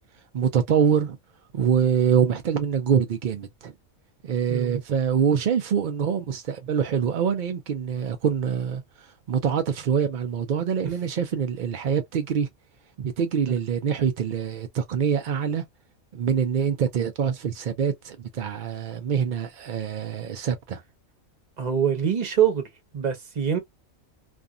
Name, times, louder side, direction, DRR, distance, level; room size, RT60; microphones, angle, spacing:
voice 1, 0.3-1.2 1.5-3.7 4.2-8.8 9.3-12.5 13.0-15.6 16.1-20.8, right 7 dB, 75° right, 0.4 m, -25 dB
voice 2, 4.5-4.8 13.5-13.6 21.6-22.6 22.9-23.6, right 8 dB, 35° right, 0.8 m, -24 dB
2.5 x 2.5 x 2.3 m
omnidirectional pair, 1.4 m